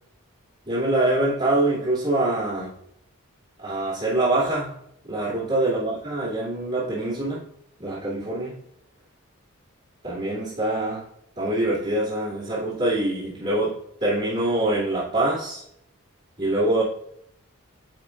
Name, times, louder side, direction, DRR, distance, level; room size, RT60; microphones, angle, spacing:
voice 1, 0.7-2.7 3.6-4.7 5.1-7.4 7.8-8.6 10.0-11.0 11.4-15.6 16.4-16.8, right 1 dB, 30° right, -11 dB, 2.7 m, -24 dB
10.5 x 5.1 x 2.6 m, 0.73 s
head